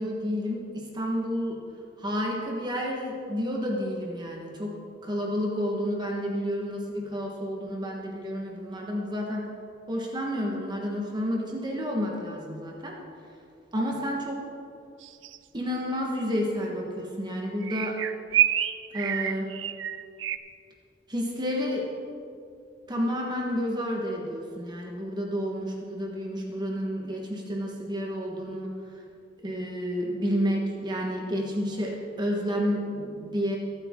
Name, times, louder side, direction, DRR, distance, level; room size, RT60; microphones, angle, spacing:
voice 1, 0.0-1.6 2.0-4.7 5.0-9.5 9.9-13.0 13.7-14.4 15.5-17.9 18.9-19.5 21.1-21.9 22.9-28.7 29.4-33.6, equal, 25° right, -1 dB, 1.4 m, -30 dB
sound 1, 15.0-15.4 17.6-20.4, right 12 dB, 85° right, 0.5 m, -27 dB
22.5 x 7.9 x 3.7 m, 2.5 s
head